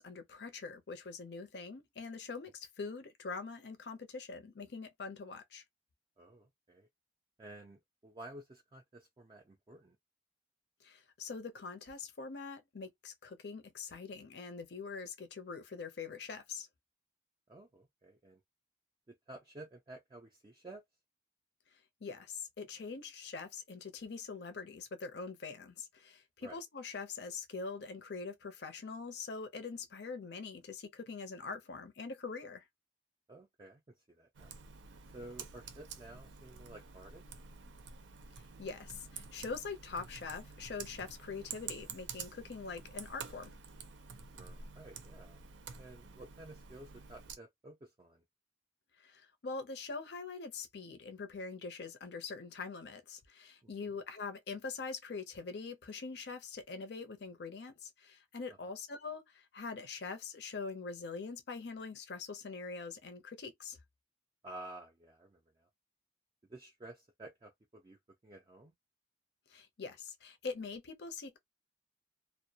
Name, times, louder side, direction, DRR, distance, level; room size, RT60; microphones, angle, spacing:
voice 1, 0.0-5.6 10.8-16.7 22.0-32.6 38.6-43.5 49.0-63.8 69.5-71.4, left 4 dB, 65° left, 0.6 m, -43 dB
voice 2, 6.2-6.9 7.4-10.0 17.5-18.4 19.1-20.8 26.4-26.6 33.3-34.5 35.1-37.2 44.3-45.4 45.8-48.2 53.6-53.9 58.5-58.6 64.4-65.7 66.5-68.7, right 2 dB, 25° right, 0.3 m, -52 dB
Computer keyboard, 34.3-47.4, right 6 dB, 90° right, 0.4 m, -49 dB
2.2 x 2.0 x 2.7 m
head